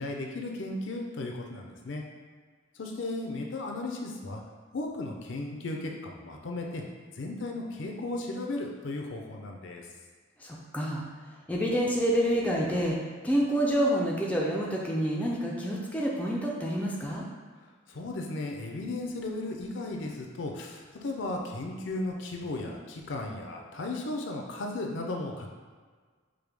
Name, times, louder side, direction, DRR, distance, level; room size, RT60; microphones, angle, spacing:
voice 1, 0.0-2.0 2.8-4.4 4.7-6.8 7.2-9.9 17.9-25.5, left 2 dB, 65° left, 1 dB, 0.5 m, -35 dB
voice 2, 10.4-11.1 11.5-13.0 13.2-17.2, equal, 5° left, -4 dB, 0.4 m, -28 dB
4.7 x 2.2 x 3.4 m, 1.5 s
head